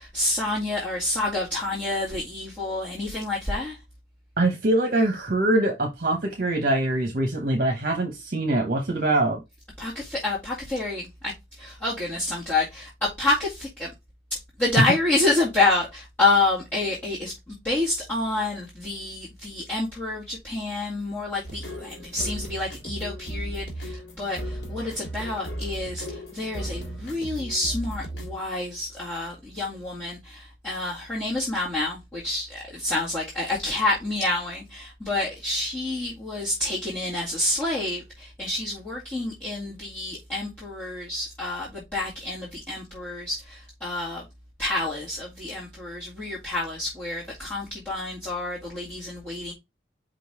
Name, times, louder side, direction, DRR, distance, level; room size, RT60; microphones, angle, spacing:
voice 1, 0.0-3.8 9.8-11.3 11.6-13.9 14.3-44.2 44.6-49.5, left 2 dB, 10° left, 2.0 m, -28 dB
voice 2, 4.4-9.4, right 2 dB, 50° right, 1.0 m, -23 dB
sound 1, 21.4-28.4, right 1 dB, 80° left, 2.3 m, -35 dB
5.1 x 3.8 x 4.8 m
head